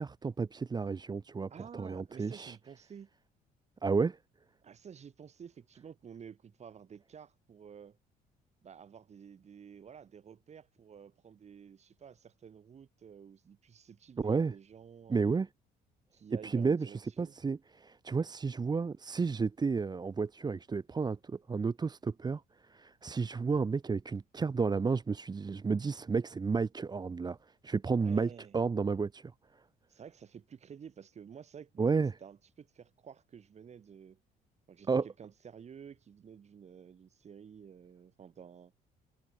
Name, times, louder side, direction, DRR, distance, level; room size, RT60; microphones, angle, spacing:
voice 1, 0.0-2.6 3.8-4.2 14.2-14.5 15.1-15.5 16.4-22.4 22.7-27.4 27.6-29.3 31.8-32.1 34.9-35.0, right 4 dB, 25° right, 1.4 m, -32 dB
voice 2, 1.5-3.1 4.6-8.0 8.6-15.4 16.1-17.3 27.9-28.5 29.9-34.2 34.7-38.7, right 7 dB, 40° right, 5.0 m, -51 dB
cardioid pair, 110°, 17 cm